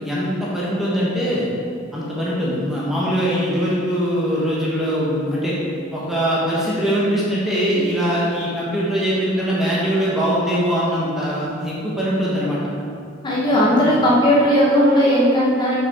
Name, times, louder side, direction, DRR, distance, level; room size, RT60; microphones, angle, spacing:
voice 1, 0.0-1.5 1.9-5.6 5.9-12.6 13.5-13.9, equal, ahead, -8 dB, 1.1 m, -22 dB
voice 2, 13.2-15.8, equal, 20° left, -6 dB, 1.1 m, -16 dB
6.7 x 5.8 x 3.6 m, 2.4 s
head